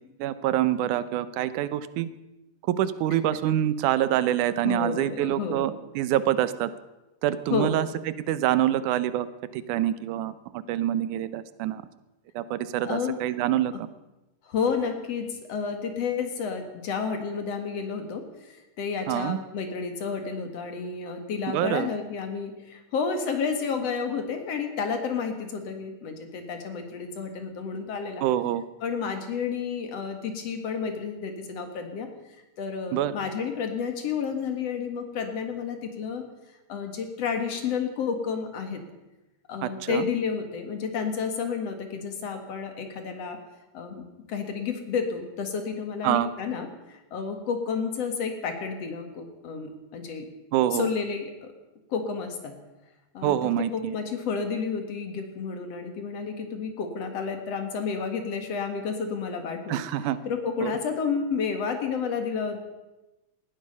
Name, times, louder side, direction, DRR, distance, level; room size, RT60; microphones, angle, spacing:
voice 1, 0.2-2.1 2.7-6.7 7.2-7.9 8.3-9.3 9.5-11.8 12.4-13.9 19.1-19.4 21.5-21.9 28.2-28.6 32.9-33.1 39.6-40.1 46.0-46.3 50.5-50.9 53.2-54.0 59.7-60.2 60.6-60.7, right 12 dB, 85° right, 14 dB, 2.3 m, -26 dB
voice 2, 4.6-5.8 7.5-7.8 12.8-13.2 14.4-28.2 28.8-32.1 32.6-36.2 36.7-38.8 39.5-43.4 43.7-50.3 50.7-51.5 51.9-52.5 53.1-53.4 53.7-59.8 60.3-62.6, left 5 dB, 60° left, 6 dB, 2.7 m, -31 dB
19.0 x 14.0 x 5.4 m, 1.0 s
omnidirectional pair, 3.5 m